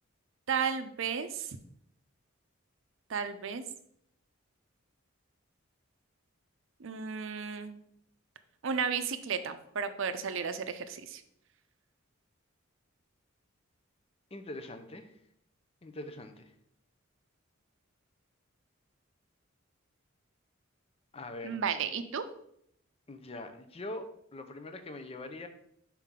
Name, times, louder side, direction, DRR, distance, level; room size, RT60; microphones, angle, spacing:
voice 1, 0.5-1.6 3.1-3.6 6.8-7.8 8.6-11.2 21.4-22.2, right 6 dB, 65° right, 10 dB, 0.5 m, -33 dB
voice 2, 14.3-15.1 15.8-16.5 21.1-21.6 23.1-25.5, left 2 dB, 30° left, 7 dB, 0.6 m, -43 dB
5.7 x 4.5 x 3.7 m, 0.71 s
head